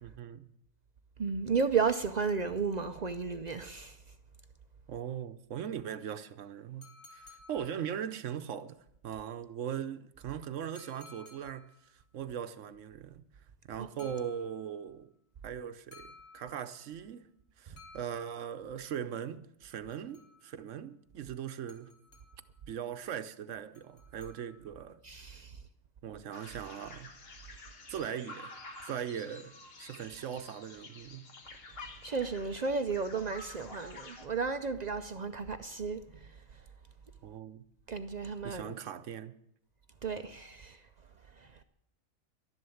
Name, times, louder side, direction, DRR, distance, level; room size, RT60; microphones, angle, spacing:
voice 1, 0.0-0.5 4.9-8.8 9.0-13.2 13.7-15.1 15.4-17.3 17.6-21.9 22.7-25.0 26.0-27.1 27.9-28.6 28.8-29.5 29.8-31.3 37.2-37.6 38.4-39.3, right 9 dB, 70° right, 1.0 m, -40 dB
voice 2, 1.2-4.0 13.8-14.1 25.0-25.6 32.0-36.3 37.9-38.7 40.0-40.8 41.4-41.5, right 5 dB, 50° right, 0.5 m, -33 dB
sound 1, 6.8-8.3 10.8-11.9 14.0-14.9 15.9-16.9 17.8-18.8 19.7-20.7 21.7-22.6 23.7-24.8, left 3 dB, 65° left, 2.9 m, -57 dB
sound 2, 26.3-34.3, left 3 dB, 50° left, 1.5 m, -50 dB
12.0 x 11.0 x 7.0 m
omnidirectional pair, 1.4 m